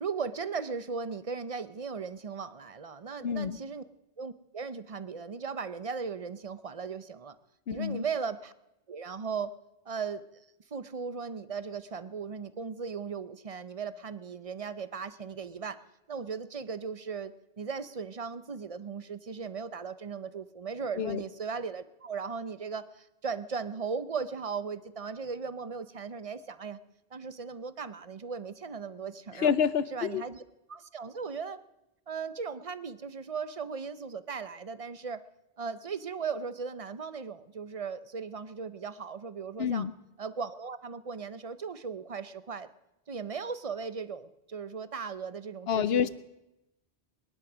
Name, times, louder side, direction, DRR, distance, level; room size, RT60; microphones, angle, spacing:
voice 1, 0.0-3.8 4.2-7.4 7.7-8.5 8.9-9.5 9.9-10.2 10.7-15.8 16.1-26.8 27.1-29.5 29.9-30.4 30.7-31.6 32.1-35.2 35.6-39.9 40.2-42.7 43.1-46.1, right 5 dB, 40° right, 13 dB, 0.7 m, -37 dB
voice 2, 3.2-3.6 7.7-8.0 21.0-21.2 29.3-30.2 39.6-39.9 45.7-46.1, left 7 dB, 70° left, 15 dB, 1.0 m, -28 dB
21.5 x 10.5 x 6.2 m, 0.91 s
omnidirectional pair, 1.1 m